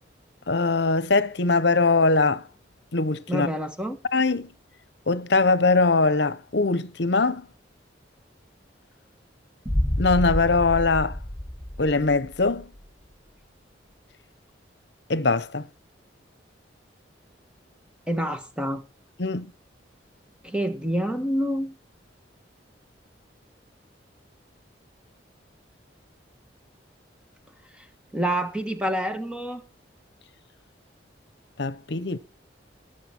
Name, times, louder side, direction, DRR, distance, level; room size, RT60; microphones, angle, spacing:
voice 1, 0.5-2.4 2.9-3.5 4.1-4.5 5.1-7.5 10.0-11.2 11.8-12.7 15.1-15.6 19.2-19.5 31.6-32.2, left 3 dB, 65° left, 0.9 m, -22 dB
voice 2, 3.3-4.0 18.1-18.8 20.4-21.8 27.7-27.9 28.1-29.6, right 1 dB, 5° right, 1.4 m, -27 dB
sound 1, 9.6-12.6, left 1 dB, 10° left, 1.9 m, -28 dB
18.5 x 7.8 x 4.5 m
head